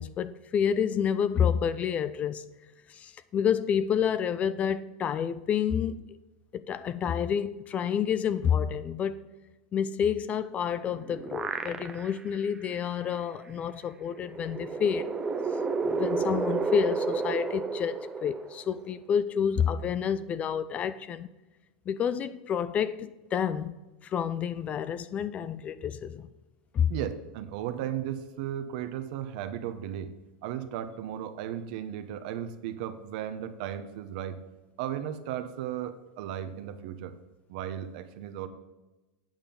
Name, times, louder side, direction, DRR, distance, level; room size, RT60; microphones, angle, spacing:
voice 1, 0.0-2.5 2.9-6.1 6.5-9.2 9.7-15.1 15.8-21.3 21.9-23.8 24.0-26.3 26.7-26.9, left 8 dB, 25° left, 0.4 m, -29 dB
sound 1, 10.7-12.3 12.7-12.8 14.1-18.9, right 4 dB, 15° right, 0.6 m, -31 dB
voice 2, 26.9-30.1 30.4-34.4 34.8-37.2 37.5-38.5, right 10 dB, 65° right, 0.8 m, -35 dB
8.9 x 5.7 x 5.2 m
supercardioid pair, 135°, 5 cm